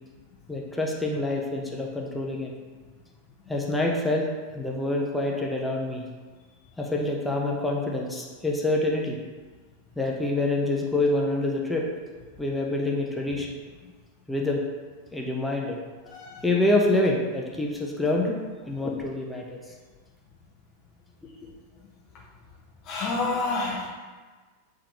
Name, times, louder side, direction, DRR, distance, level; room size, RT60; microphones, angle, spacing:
voice 1, 0.5-2.5 3.5-6.0 6.8-9.2 10.0-11.9 12.4-13.5 14.3-14.6 15.1-15.8 16.4-18.4 18.7-19.6 21.4-21.5, left 2 dB, 5° left, -1 dB, 1.0 m, -26 dB
voice 2, 16.1-16.4 22.8-23.9, left 3 dB, 35° left, -3 dB, 0.8 m, -29 dB
8.5 x 3.7 x 3.0 m, 1.4 s
figure-of-eight pair, 90°, 0 cm